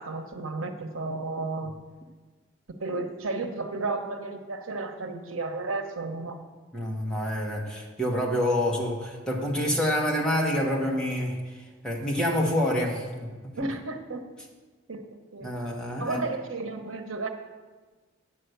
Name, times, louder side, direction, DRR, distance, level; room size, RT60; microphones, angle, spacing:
voice 1, 0.0-1.7 2.8-6.4 13.6-14.2 14.9-15.5 16.0-17.3, right 3 dB, 85° right, 6 dB, 1.0 m, -33 dB
voice 2, 6.7-13.7 15.4-16.2, left 1 dB, 5° left, -2 dB, 1.4 m, -27 dB
9.8 x 5.7 x 8.0 m, 1.4 s
head